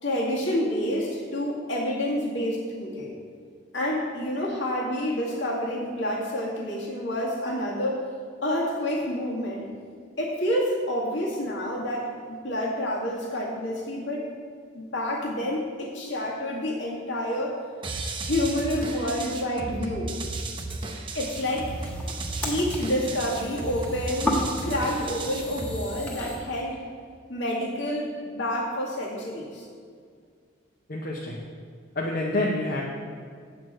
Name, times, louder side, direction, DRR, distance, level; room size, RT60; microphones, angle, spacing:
voice 1, 0.0-3.1 3.7-8.0 8.4-9.7 10.2-14.2 14.7-17.6 18.2-20.1 21.1-21.7 22.4-24.4 24.6-26.8 27.3-29.6, left 1 dB, 70° left, -4 dB, 2.1 m, -28 dB
sound 1, 17.8-25.8, right 2 dB, 25° right, 0.7 m, -34 dB
sound 2, 21.2-26.4, left 1 dB, 5° left, 1.3 m, -34 dB
voice 2, 30.9-31.4 31.9-32.8, left 2 dB, 50° left, -2 dB, 0.9 m, -27 dB
8.6 x 4.8 x 7.5 m, 2.1 s
head